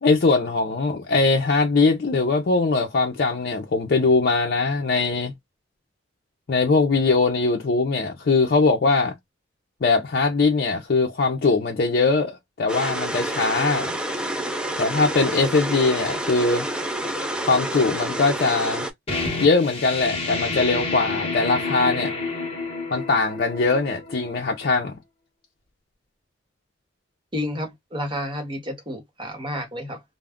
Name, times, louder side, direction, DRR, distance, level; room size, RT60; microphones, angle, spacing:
voice 1, 0.0-5.3 6.5-9.1 9.8-13.9 14.8-16.7 17.4-18.9 19.4-22.2 22.9-24.9, left 3 dB, 55° left, 0.5 m, -21 dB
sound 1, 12.7-18.9, right 1 dB, 5° right, 0.3 m, -28 dB
sound 2, 19.1-24.5, left 3 dB, 30° left, 1.0 m, -29 dB
voice 2, 27.3-30.0, left 1 dB, 25° right, 1.0 m, -30 dB
2.3 x 2.0 x 3.4 m
head